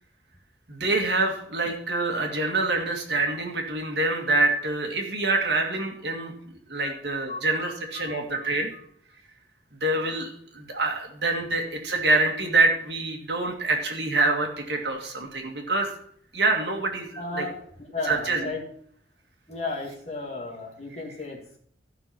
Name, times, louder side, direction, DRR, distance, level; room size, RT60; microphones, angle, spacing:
voice 1, 0.7-6.3 6.7-8.7 9.8-15.9 16.3-17.5 18.1-18.5, right 2 dB, 60° right, 2 dB, 2.0 m, -26 dB
voice 2, 6.8-7.7 8.0-8.8 17.2-17.6 17.9-18.6 19.5-21.6, left 3 dB, 35° left, -1 dB, 2.1 m, -35 dB
13.5 x 5.7 x 6.0 m, 0.63 s
head